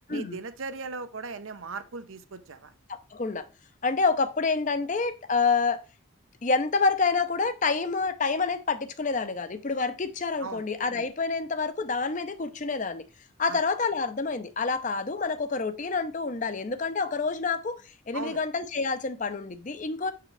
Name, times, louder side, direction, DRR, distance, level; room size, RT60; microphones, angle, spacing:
voice 1, 0.1-2.7 10.4-10.7 13.5-13.6 18.1-18.4, right 4 dB, 75° right, 0.7 m, -38 dB
voice 2, 2.9-3.4 3.8-5.8 6.4-13.0 13.4-20.1, left 4 dB, 35° left, 0.5 m, -28 dB
6.9 x 4.8 x 3.2 m
head